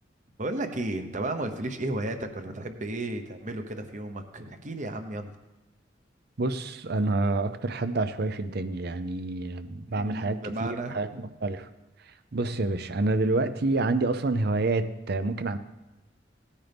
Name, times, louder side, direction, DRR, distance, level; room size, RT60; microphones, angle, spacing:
voice 1, 0.4-5.4 10.0-11.2, right 2 dB, 40° right, 7 dB, 1.0 m, -33 dB
voice 2, 6.4-11.7 12.1-15.6, right 2 dB, 60° right, 11 dB, 0.6 m, -28 dB
17.5 x 9.8 x 3.5 m, 1.0 s
head